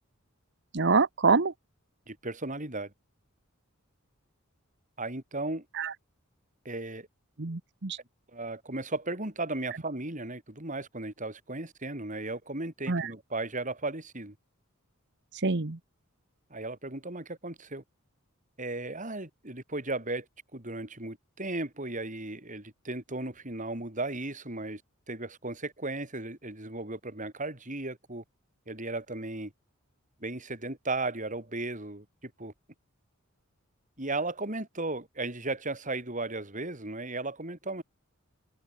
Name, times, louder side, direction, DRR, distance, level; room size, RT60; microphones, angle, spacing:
voice 1, 0.7-1.5 5.8-5.9 7.4-8.0 12.9-13.1 15.3-15.8, right 4 dB, 55° right, 1.1 m, -26 dB
voice 2, 2.1-2.9 5.0-5.7 6.7-7.1 8.3-14.4 16.5-17.8 18.6-20.3 20.5-24.8 25.1-28.2 28.7-29.5 30.2-32.5 34.0-37.8, right 2 dB, 35° right, 5.3 m, -35 dB
head